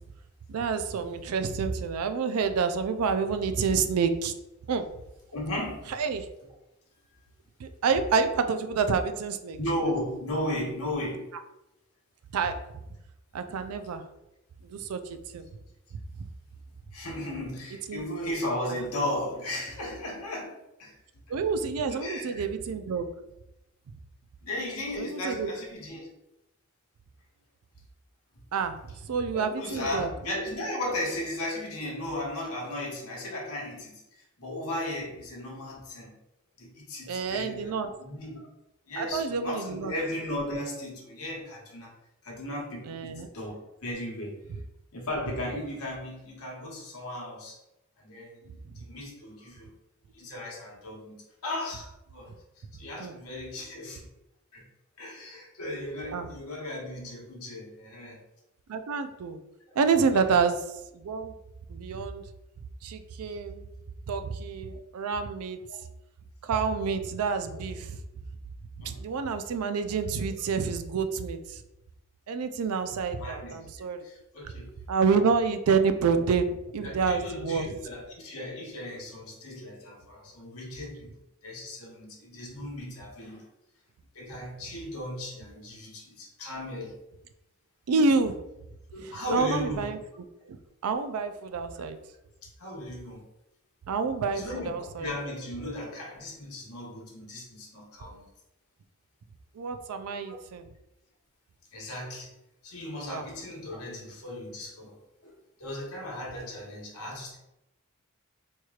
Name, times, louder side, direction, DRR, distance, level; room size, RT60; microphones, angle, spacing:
voice 1, 0.5-4.3 4.7-4.8 6.0-6.3 7.6-9.6 12.3-12.6 13.3-14.0 14.6-15.5 17.9-18.0 21.3-23.1 25.0-25.5 28.5-30.1 37.1-37.9 39.0-39.9 42.9-43.3 53.0-53.1 56.1-56.3 58.7-59.4 59.8-60.6 60.9-61.4 61.7-62.2 62.8-63.6 64.1-65.6 66.4-68.0 68.8-71.6 72.3-74.0 74.9-77.7 87.9-88.3 89.0-90.0 90.4-90.6 90.8-92.0 93.9-95.1 99.5-100.7 103.1-103.2, right 5 dB, 85° right, 8 dB, 0.4 m, -28 dB
voice 2, 5.3-5.9 9.6-11.3 14.7-14.8 16.9-21.0 21.8-22.4 24.4-26.1 29.3-36.1 36.6-38.4 38.9-41.9 42.2-44.4 44.9-47.6 48.0-49.7 50.1-51.2 51.4-54.1 54.5-54.6 55.0-58.2 60.1-60.4 65.7-65.8 67.5-67.6 68.8-69.0 73.2-73.6 74.0-74.7 76.1-76.2 76.8-81.1 81.4-83.4 84.1-87.0 88.9-89.9 92.6-93.3 94.3-94.7 95.0-98.3 100.2-100.3 101.7-102.3 102.6-105.0 105.2-105.3 105.6-107.4, left 1 dB, 85° left, -2 dB, 1.1 m, -36 dB
4.5 x 2.9 x 2.4 m, 0.91 s
head